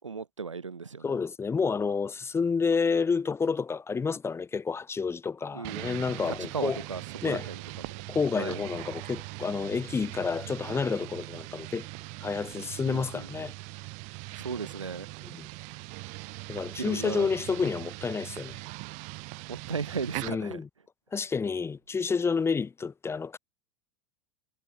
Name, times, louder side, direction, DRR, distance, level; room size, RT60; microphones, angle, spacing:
voice 1, 0.0-1.2 5.5-5.9 6.3-8.0 8.4-8.6 12.8-13.3 14.3-15.1 16.8-17.3 19.5-20.6, right 5 dB, 80° right, 6.0 m, -36 dB
voice 2, 1.0-6.8 7.2-7.5 8.1-11.9 12.2-13.5 15.3-15.5 16.5-18.6 20.2-20.7 21.1-23.4, left 5 dB, 15° left, 1.5 m, -29 dB
sound 1, 5.6-20.3, right 32 dB, 50° right, 5.6 m, -41 dB
figure-of-eight pair, 85°, 16 cm